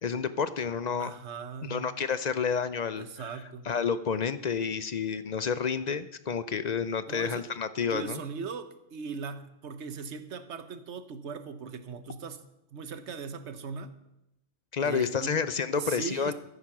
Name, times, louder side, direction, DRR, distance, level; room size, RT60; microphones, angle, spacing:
voice 1, 0.0-1.1 1.6-3.3 3.6-8.2 14.7-16.3, left 6 dB, 50° left, 13 dB, 0.5 m, -30 dB
voice 2, 1.0-2.0 3.0-3.7 7.1-7.5 7.9-12.4 12.7-14.0 14.8-15.4 15.7-16.3, right 5 dB, 70° right, 11 dB, 1.3 m, -39 dB
14.0 x 8.4 x 6.0 m, 0.89 s
omnidirectional pair, 1.2 m